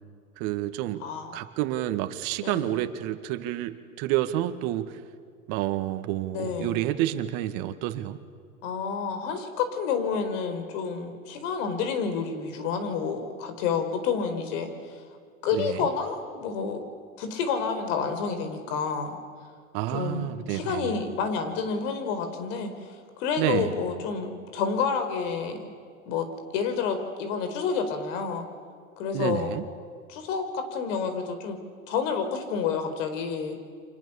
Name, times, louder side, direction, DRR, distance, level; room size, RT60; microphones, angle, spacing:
voice 1, 0.4-1.0 1.3-4.9 5.5-8.2 15.5-15.9 19.7-20.8 23.4-23.7 29.1-29.6, right 14 dB, 55° right, 8 dB, 2.1 m, -29 dB
voice 2, 1.0-1.4 2.4-2.8 6.3-6.8 8.6-15.0 15.4-16.9 17.2-19.2 19.9-25.7 26.1-26.3 26.5-28.5 29.0-29.5 30.1-31.6 31.9-33.6, left 6 dB, 65° left, 8 dB, 4.6 m, -29 dB
29.5 x 25.5 x 7.2 m, 2.1 s
hypercardioid pair, 105°, 41 cm